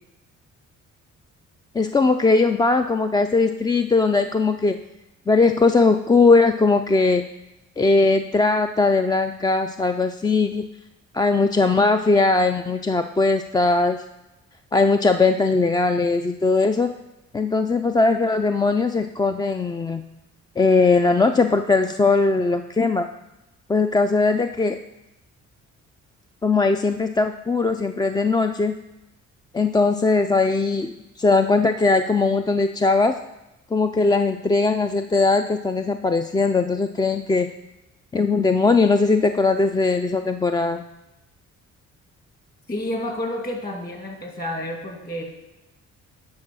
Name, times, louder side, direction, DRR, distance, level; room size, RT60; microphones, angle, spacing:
voice 1, 1.7-4.8 5.3-7.3 7.8-10.7 11.1-14.0 14.7-16.9 17.3-20.0 20.6-23.1 23.7-24.8 26.4-28.8 29.5-33.2 33.7-37.5 38.1-40.8, left 3 dB, 15° left, 7 dB, 0.3 m, -19 dB
voice 2, 42.7-45.2, left 1 dB, 30° left, 1 dB, 2.4 m, -30 dB
10.5 x 4.7 x 6.1 m, 0.97 s
cardioid pair, 90°, 30 cm